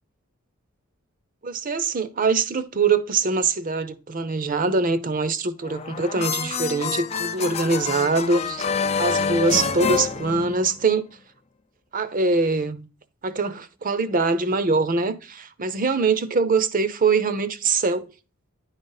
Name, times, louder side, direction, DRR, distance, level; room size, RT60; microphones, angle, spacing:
voice 1, 1.4-8.7 9.0-11.1 11.9-12.9 13.2-18.1, right 4 dB, 40° right, 0.7 m, -23 dB
sound 1, 5.6-11.0, left 6 dB, 30° left, 0.3 m, -27 dB
10.5 x 4.0 x 4.0 m
head